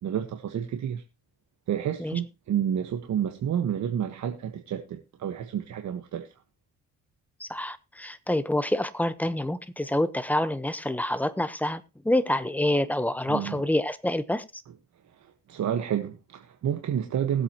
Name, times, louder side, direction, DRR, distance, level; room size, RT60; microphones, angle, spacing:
voice 1, 0.0-1.0 1.7-6.3 13.3-13.6 15.5-17.4, right 9 dB, 65° right, 1.4 m, -29 dB
voice 2, 7.4-14.4, left 1 dB, 5° left, 1.0 m, -27 dB
20.5 x 8.0 x 3.0 m
cardioid pair, 90°, 30 cm